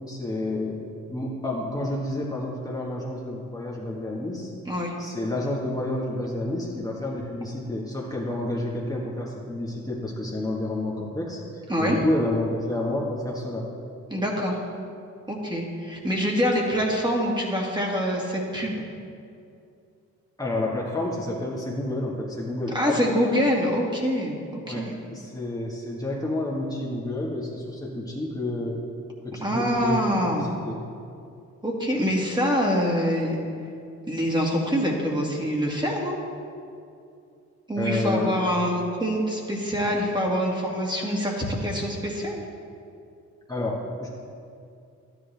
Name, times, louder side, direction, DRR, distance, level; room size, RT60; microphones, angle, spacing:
voice 1, 0.1-0.8 1.1-4.5 5.0-13.7 20.4-23.1 24.6-28.8 29.2-30.0 30.3-30.8 37.7-38.4 43.5-44.1, left 1 dB, 10° left, -5 dB, 1.5 m, -29 dB
voice 2, 14.1-14.6 15.3-18.8 22.7-25.0 29.4-30.5 31.6-33.4 34.1-36.2 37.7-42.4, equal, 15° right, -2 dB, 2.1 m, -25 dB
12.0 x 10.5 x 3.4 m, 2.5 s
cardioid pair, 90°, 30 cm